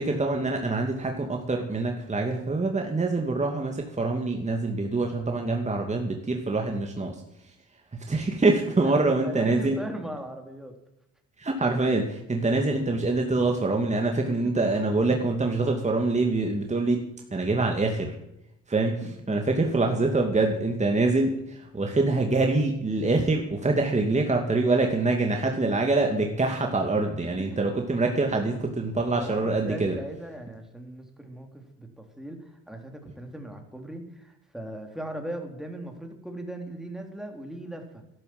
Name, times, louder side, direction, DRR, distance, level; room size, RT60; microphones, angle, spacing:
voice 1, 0.0-7.2 8.1-9.8 11.4-17.0 17.3-18.1 18.7-19.0 19.3-30.0, right 3 dB, 20° right, 2 dB, 2.4 m, -25 dB
voice 2, 8.8-10.8 14.2-14.4 19.0-19.4 27.2-27.6 29.2-38.0, right 1 dB, ahead, 4 dB, 3.5 m, -39 dB
12.0 x 11.5 x 7.8 m, 0.81 s
supercardioid pair, 75°, 31 cm